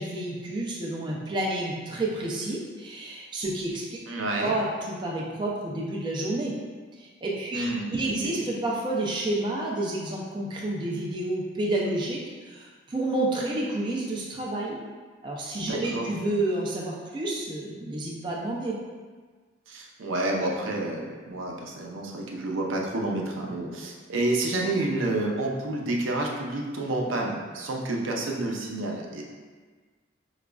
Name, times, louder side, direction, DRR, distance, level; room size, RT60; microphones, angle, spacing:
voice 1, 0.0-4.0 4.4-6.6 7.0-14.8 15.2-18.8, right 2 dB, 25° right, -3 dB, 0.3 m, -30 dB
voice 2, 4.1-4.6 7.5-8.3 15.7-16.1 19.7-29.2, right 2 dB, 90° right, -1 dB, 0.5 m, -29 dB
4.9 x 2.3 x 2.2 m, 1.5 s
head